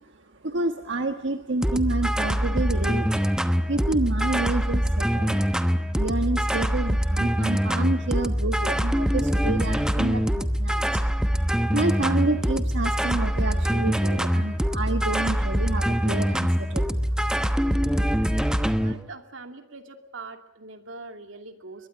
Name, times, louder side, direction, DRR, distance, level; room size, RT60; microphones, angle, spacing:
voice 1, 0.4-3.2 3.7-5.4 5.9-11.4 11.7-17.5, right 2 dB, 65° right, 6 dB, 1.4 m, -29 dB
sound 1, 1.6-18.9, equal, 5° right, 1.0 m, -24 dB
voice 2, 18.7-21.9, right 3 dB, 90° right, 6 dB, 2.7 m, -43 dB
22.5 x 21.5 x 9.3 m, 0.86 s
head